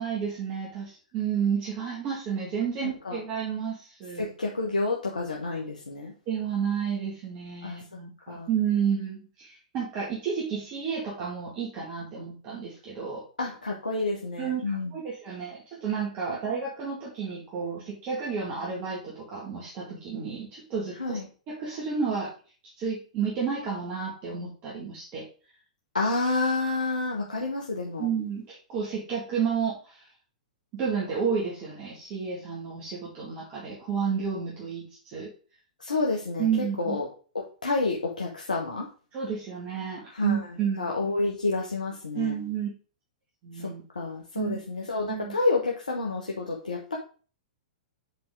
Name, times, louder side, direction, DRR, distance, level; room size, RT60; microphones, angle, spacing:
voice 1, 0.0-4.3 6.3-13.2 14.4-21.2 21.5-22.3 22.8-25.3 28.0-30.1 30.7-35.3 36.4-37.0 39.1-40.9 42.1-42.7 43.4-43.8 44.3-44.6 45.1-45.4, right 6 dB, 40° right, -4 dB, 2.2 m, -31 dB
voice 2, 4.2-6.1 7.6-7.8 8.3-8.5 13.4-14.9 21.0-21.2 25.9-28.1 35.8-36.5 36.8-37.1 37.6-38.9 40.1-40.4 40.8-42.3 43.6-47.0, left 3 dB, 90° left, -1 dB, 1.2 m, -29 dB
7.4 x 4.4 x 3.8 m, 0.38 s
hypercardioid pair, 110°, 4 cm